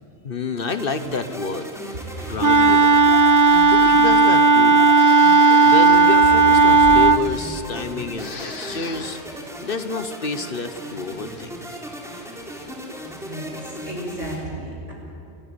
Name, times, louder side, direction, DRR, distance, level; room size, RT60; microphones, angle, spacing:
voice 1, 0.2-1.7 2.2-3.0 3.7-5.0 5.6-9.2 9.6-11.5, left 4 dB, 50° left, 11 dB, 1.2 m, -29 dB
sound 1, 0.7-14.4, equal, ahead, 3.9 m, -36 dB
Wind instrument woodwind instrument, 2.4-7.2, right 4 dB, 30° right, 0.3 m, -14 dB
Breathing, 3.3-4.4 4.9-7.8 8.1-9.3, left 3 dB, 80° left, 2.0 m, -38 dB
voice 2, 13.1-14.9, equal, 80° right, -2 dB, 6.7 m, -34 dB
28.0 x 14.0 x 9.9 m, 2.9 s
omnidirectional pair, 1.2 m